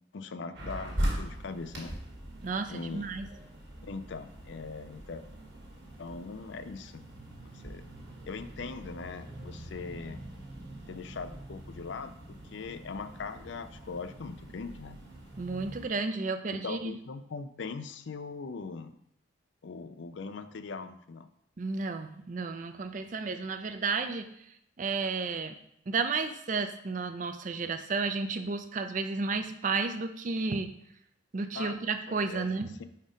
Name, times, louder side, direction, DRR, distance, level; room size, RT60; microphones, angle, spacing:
voice 1, 0.1-1.9 2.7-3.1 3.8-5.2 6.0-7.1 7.6-7.8 8.3-10.2 10.9-15.0 16.6-18.9 19.6-21.3 31.5-31.8 32.1-32.5 32.8-32.9, left 4 dB, 65° left, 11 dB, 0.4 m, -40 dB
sound 1, 0.5-15.9, right 1 dB, 55° right, 1.5 m, -41 dB
voice 2, 2.4-3.3 15.4-16.9 21.6-24.3 24.8-25.5 25.9-30.7 31.3-32.7, right 4 dB, 40° right, 8 dB, 0.4 m, -32 dB
4.8 x 4.3 x 5.1 m, 0.75 s
head